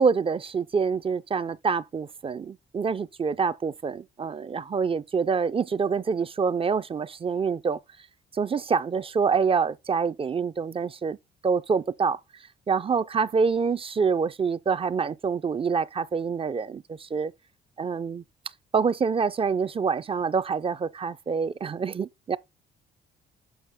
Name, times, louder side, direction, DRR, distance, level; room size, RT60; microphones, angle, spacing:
voice 1, 0.0-7.8 8.3-11.2 11.4-12.2 12.7-17.3 17.8-18.2 18.7-22.4, right 5 dB, 30° right, 0.4 m, -26 dB
7.0 x 5.4 x 3.5 m
cardioid pair, 90°, 20 cm